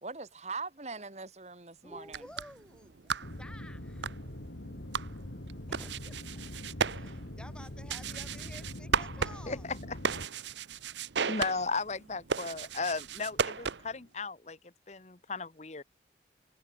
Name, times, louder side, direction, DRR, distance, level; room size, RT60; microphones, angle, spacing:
voice 1, 0.0-2.3, right 4 dB, 35° right, 1.6 m, -41 dB
voice 2, 1.8-3.1 3.4-4.1 5.7-6.4 6.8-9.7, left 1 dB, 5° left, 7.8 m, -52 dB
sound 1, 2.0-14.0, right 6 dB, 80° right, 0.9 m, -36 dB
sound 2, 3.2-10.3, left 1 dB, 75° left, 2.2 m, -43 dB
voice 3, 9.5-10.0 11.3-14.6 14.9-15.8, left 4 dB, 40° left, 1.1 m, -35 dB
head